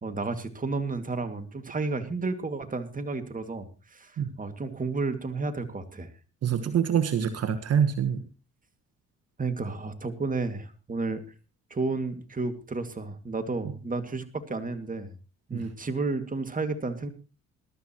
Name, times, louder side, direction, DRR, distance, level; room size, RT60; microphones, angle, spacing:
voice 1, 0.0-6.1 9.4-11.2 11.7-15.2 15.5-17.1, right 3 dB, 30° right, 8 dB, 2.2 m, -32 dB
voice 2, 6.4-8.2 15.5-15.6, right 8 dB, 55° right, 10 dB, 1.4 m, -25 dB
21.0 x 12.5 x 3.0 m, 0.34 s
supercardioid pair, 65°, 29 cm